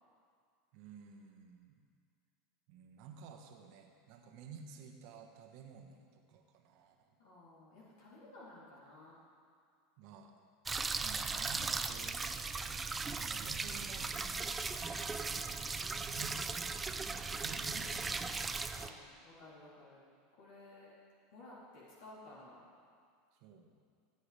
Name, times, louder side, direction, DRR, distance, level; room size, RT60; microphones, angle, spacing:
voice 1, 0.7-1.8 2.7-7.1 10.0-10.3 11.0-12.2 13.1-14.2 15.5-18.4 23.4-23.7, right 5 dB, 65° right, 3 dB, 1.4 m, -53 dB
voice 2, 7.2-9.2 14.8-15.6 17.7-18.1 18.7-20.0 20.3-20.9 21.3-22.7, left 2 dB, 75° left, -7 dB, 3.2 m, -55 dB
sound 1, 10.7-18.9, right 4 dB, 20° right, 0.5 m, -38 dB
18.0 x 8.3 x 3.4 m, 2.2 s
hypercardioid pair, 100°, 0 cm